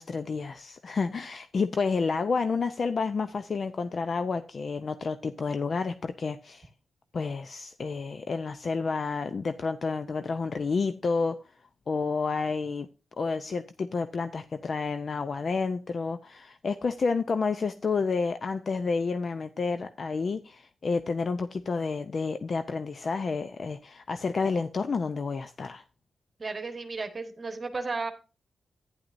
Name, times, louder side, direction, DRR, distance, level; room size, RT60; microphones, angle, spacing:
voice 1, 0.0-6.7 7.1-11.4 11.9-12.9 13.2-25.8, left 4 dB, 50° left, 0.5 m, -30 dB
voice 2, 26.4-28.1, right 3 dB, 35° right, 1.3 m, -34 dB
11.5 x 10.0 x 2.6 m
wide cardioid pair, 105°, 0 cm